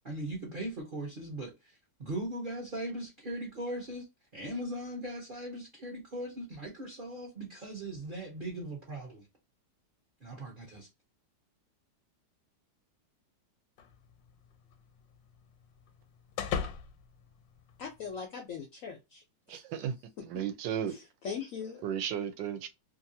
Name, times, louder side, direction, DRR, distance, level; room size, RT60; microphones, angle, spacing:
voice 1, 0.0-4.1 4.3-9.3 10.2-10.9, right 1 dB, 40° right, 0.7 m, -39 dB
sound 1, 13.8-18.2, left 7 dB, 90° left, 1.3 m, -41 dB
voice 2, 17.8-19.2 19.5-19.6 20.2-20.3 20.9-21.8, left 6 dB, 70° left, 0.7 m, -40 dB
voice 3, 19.5-19.9 20.3-20.9 21.8-22.7, right 9 dB, 85° right, 1.3 m, -34 dB
2.9 x 2.6 x 2.6 m
omnidirectional pair, 1.9 m